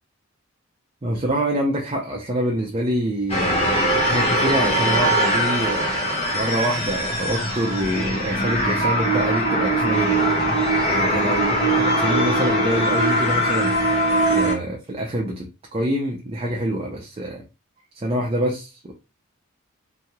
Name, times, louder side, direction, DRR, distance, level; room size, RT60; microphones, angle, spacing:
voice 1, 1.0-10.3 10.9-13.7 14.3-17.4 17.9-18.9, right 1 dB, 30° right, 0 dB, 0.5 m, -26 dB
sound 1, 3.3-14.5, right 1 dB, 30° left, 1.1 m, -21 dB
3.0 x 2.7 x 2.2 m, 0.28 s
head